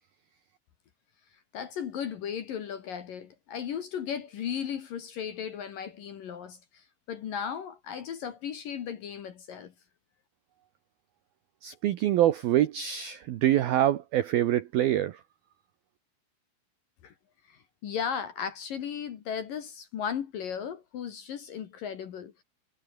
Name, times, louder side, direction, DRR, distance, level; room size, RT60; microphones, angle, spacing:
voice 1, 1.5-9.7 17.0-17.1 17.5-22.4, left 8 dB, 60° left, 2.7 m, -36 dB
voice 2, 11.6-15.2, right 12 dB, 85° right, 2.1 m, -25 dB
omnidirectional pair, 6.0 m